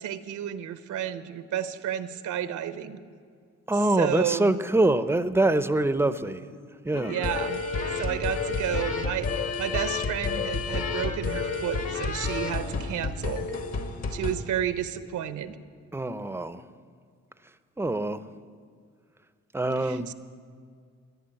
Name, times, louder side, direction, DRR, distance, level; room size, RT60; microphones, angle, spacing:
voice 1, 0.0-3.0 4.0-4.5 7.1-7.6 8.0-13.5 14.1-15.6 19.8-20.1, right 10 dB, 75° right, 12 dB, 0.9 m, -31 dB
voice 2, 3.7-6.6 6.8-7.2 15.9-16.6 17.8-18.2 19.5-20.1, right 2 dB, 10° right, 13 dB, 0.6 m, -24 dB
sound 1, 6.9-14.3, left 4 dB, 55° left, 1.9 m, -30 dB
14.5 x 11.0 x 9.0 m, 2.1 s
cardioid pair, 90°, 30 cm